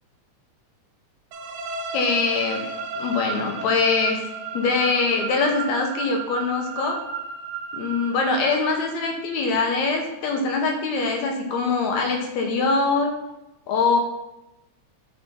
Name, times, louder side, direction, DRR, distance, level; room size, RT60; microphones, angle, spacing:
sound 1, 1.3-9.1, right 4 dB, 90° right, 2.1 m, -33 dB
voice 1, 1.9-2.6 2.9-4.2 4.5-7.0 7.7-13.1 13.7-14.0, left 4 dB, 75° left, 2 dB, 2.1 m, -23 dB
8.2 x 3.3 x 4.2 m, 0.93 s
omnidirectional pair, 3.4 m